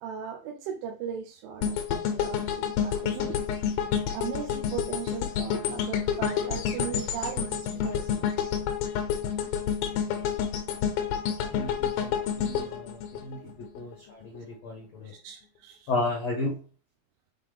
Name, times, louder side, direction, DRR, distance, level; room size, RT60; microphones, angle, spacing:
voice 1, 0.0-3.5 4.1-8.3 15.2-15.9, right 7 dB, 85° right, 2 dB, 2.5 m, -38 dB
sound 1, 1.6-13.8 14.2-14.4, left 8 dB, 90° left, 2.7 m, -29 dB
voice 2, 11.5-15.1 15.9-16.6, left 2 dB, 70° left, 0 dB, 1.2 m, -33 dB
7.2 x 4.1 x 3.5 m, 0.37 s
omnidirectional pair, 4.1 m